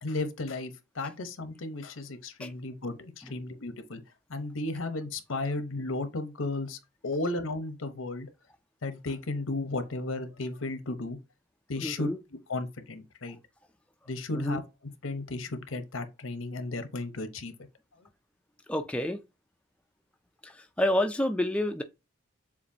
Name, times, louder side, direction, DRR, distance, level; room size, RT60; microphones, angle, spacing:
voice 1, 0.0-4.0 4.3-8.3 8.8-11.2 11.7-12.1 12.5-13.4 14.1-14.6 15.0-17.5, left 2 dB, 80° left, 0.9 m, -34 dB
voice 2, 11.8-12.2 14.3-14.6 18.7-19.2 20.4-21.8, left 1 dB, 5° left, 0.3 m, -29 dB
7.1 x 2.6 x 2.7 m
head